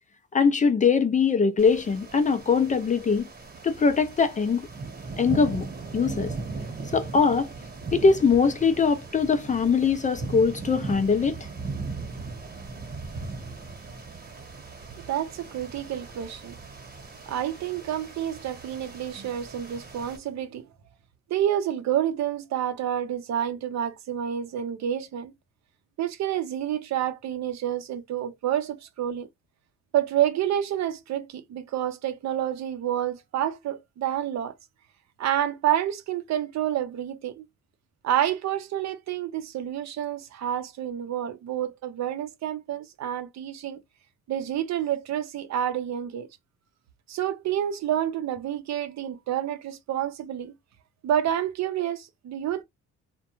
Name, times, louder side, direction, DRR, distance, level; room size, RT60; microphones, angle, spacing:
voice 1, 0.3-3.3 3.6-4.7 5.2-5.7 5.9-6.3 6.9-7.5 7.9-11.4, left 5 dB, 25° left, 0.3 m, -22 dB
sound 1, 1.6-20.2, right 3 dB, 30° right, 1.0 m, -38 dB
voice 2, 15.1-16.5 17.2-20.7 21.3-25.3 26.0-29.3 29.9-34.5 35.2-37.5 38.0-43.8 44.3-46.3 47.1-50.5 51.0-52.6, right 11 dB, 65° right, 0.6 m, -29 dB
2.3 x 2.1 x 2.9 m
cardioid pair, 90°, 30 cm